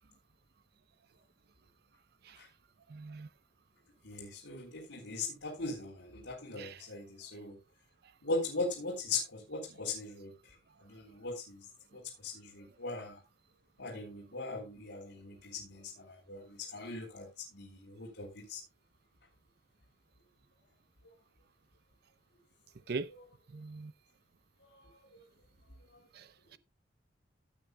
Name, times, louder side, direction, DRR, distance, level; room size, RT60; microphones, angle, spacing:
voice 1, 2.9-3.3 6.6-6.8 22.9-23.1 23.5-23.9 26.1-26.3, right 4 dB, 60° right, 0.5 m, -40 dB
voice 2, 4.0-7.6 8.2-10.5 10.8-11.7 11.9-13.2 13.8-18.6 21.0-21.1 24.6-25.2 25.9-26.0, left 3 dB, 85° left, 3.5 m, -40 dB
16.0 x 8.5 x 2.2 m
head